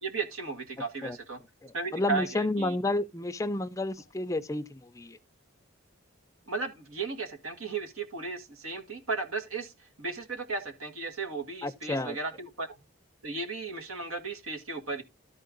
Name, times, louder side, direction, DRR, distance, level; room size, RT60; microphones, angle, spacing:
voice 1, 0.0-1.4 1.7-2.8 6.5-12.8 13.2-15.0, right 4 dB, 85° right, 1.9 m, -35 dB
voice 2, 1.6-5.2 11.6-12.2, left 2 dB, 15° left, 0.4 m, -31 dB
13.0 x 4.4 x 3.8 m
head